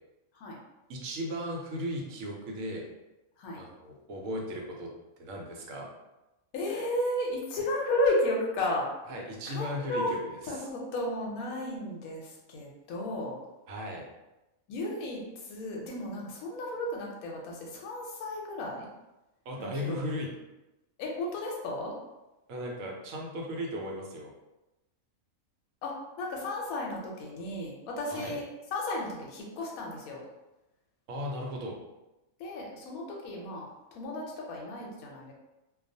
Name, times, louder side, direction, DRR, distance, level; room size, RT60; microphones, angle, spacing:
voice 1, 0.9-2.8 3.6-4.9 5.2-5.9 9.1-10.2 10.4-10.7 13.7-14.0 19.5-20.3 22.5-24.3 28.1-28.4 31.1-31.8, equal, 70° right, 0 dB, 0.9 m, -36 dB
voice 2, 6.5-8.9 9.5-10.1 10.5-13.4 14.7-18.9 19.6-20.2 21.0-21.9 25.8-28.4 28.7-30.2 32.4-35.3, left 1 dB, 85° left, -1 dB, 1.0 m, -33 dB
2.3 x 2.3 x 2.6 m, 1.0 s
omnidirectional pair, 1.5 m